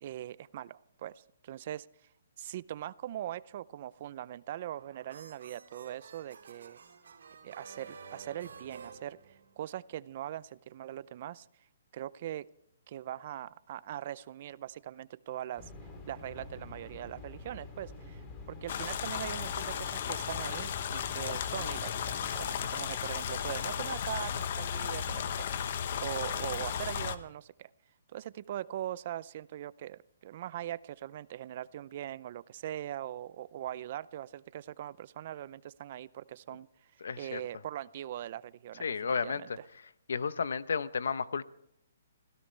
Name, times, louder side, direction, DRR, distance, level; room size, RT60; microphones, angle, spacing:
voice 1, 0.0-1.9 2.4-6.8 7.4-11.5 11.9-12.5 12.9-15.7 16.1-25.5 26.0-27.7 28.1-36.7 36.9-39.6, right 12 dB, 45° right, 19 dB, 0.5 m, -41 dB
sound 1, 4.5-9.9, right 5 dB, 80° right, 3.2 m, -51 dB
sound 2, 15.6-22.7, left 3 dB, 20° left, 2.8 m, -47 dB
sound 3, 18.7-27.2, left 8 dB, 50° left, 1.1 m, -35 dB
voice 2, 37.0-37.4 38.8-39.6 40.1-41.4, left 5 dB, 80° left, 15 dB, 0.9 m, -32 dB
26.0 x 16.5 x 3.3 m, 0.75 s
hypercardioid pair, 160°, 0 cm